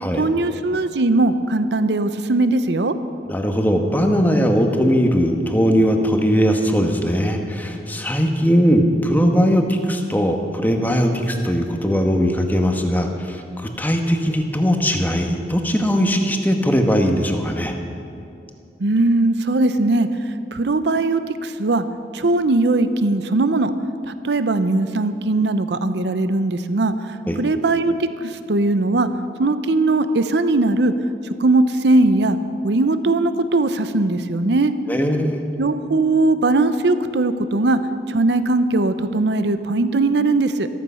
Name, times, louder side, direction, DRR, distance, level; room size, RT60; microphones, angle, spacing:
voice 1, 0.1-2.9 18.8-20.1 20.5-21.8 22.1-23.7 24.1-29.1 29.4-30.9 31.4-32.4 32.6-34.7 35.6-37.8 38.1-40.7, right 2 dB, 70° right, 11 dB, 0.7 m, -19 dB
voice 2, 3.3-17.7 27.3-27.4 34.9-35.5, equal, 10° left, 4 dB, 1.2 m, -19 dB
14.0 x 14.0 x 5.6 m, 2.7 s
head